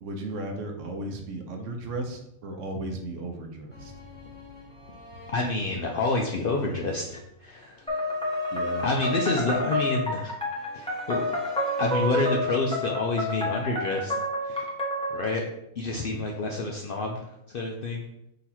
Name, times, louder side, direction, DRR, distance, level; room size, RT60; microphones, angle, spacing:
voice 1, 0.0-3.9 8.5-8.9 16.1-16.2, right 2 dB, 70° right, 3 dB, 1.0 m, -35 dB
sound 1, 3.7-13.8 14.1-14.2, left 3 dB, 85° left, 1.6 m, -49 dB
voice 2, 5.3-8.1 8.8-10.3 10.7-11.3 11.8-14.7 15.1-15.4 15.8-17.2 17.5-18.0, left 2 dB, 65° left, 0 dB, 0.5 m, -28 dB
sound 2, 7.9-15.3, left 1 dB, 5° left, 0.7 m, -29 dB
4.0 x 2.8 x 4.2 m, 0.83 s
omnidirectional pair, 1.4 m